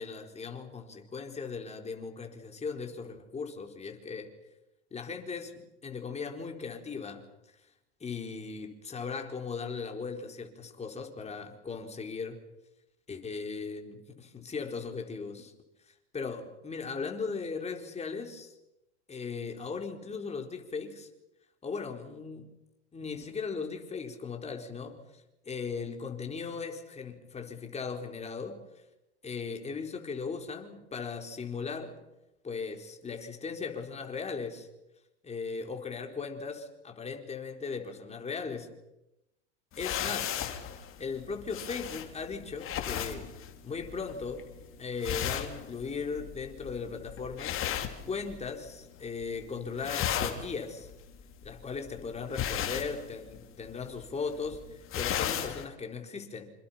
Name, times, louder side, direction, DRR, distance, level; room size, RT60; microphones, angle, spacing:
voice 1, 0.0-4.3 4.9-7.2 8.0-12.4 13.1-15.5 15.9-18.5 19.1-21.1 21.6-22.5 22.9-25.0 25.4-28.6 29.2-31.9 32.4-34.7 35.2-38.7 39.8-40.3 41.0-43.3 43.6-44.5 44.8-47.6 48.0-50.9 51.4-56.5, left 5 dB, 20° left, 4 dB, 4.5 m, -38 dB
sound 1, 39.7-48.7 49.0-49.4 49.7-55.6, left 10 dB, 40° left, 3.4 m, -36 dB
28.0 x 27.0 x 5.8 m, 0.94 s
hypercardioid pair, 100°, 34 cm